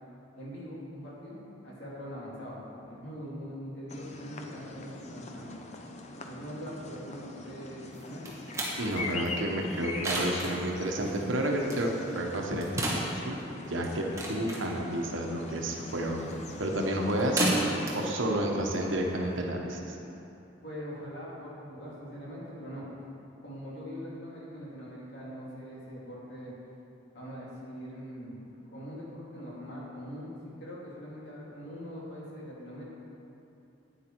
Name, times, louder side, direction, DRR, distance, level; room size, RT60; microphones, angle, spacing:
voice 1, 0.3-5.5 6.2-8.4 20.6-22.9 23.4-26.6 27.1-32.9, equal, 60° left, -6 dB, 2.5 m, -42 dB
sound 1, 3.9-18.2, left 2 dB, 35° left, 0.6 m, -42 dB
sound 2, 7.9-19.4, right 1 dB, 15° right, 1.3 m, -35 dB
voice 2, 8.8-13.4 13.7-16.2 16.6-17.5 17.9-19.9, right 1 dB, 80° right, 1 dB, 1.1 m, -30 dB
9.1 x 8.2 x 4.6 m, 2.8 s
head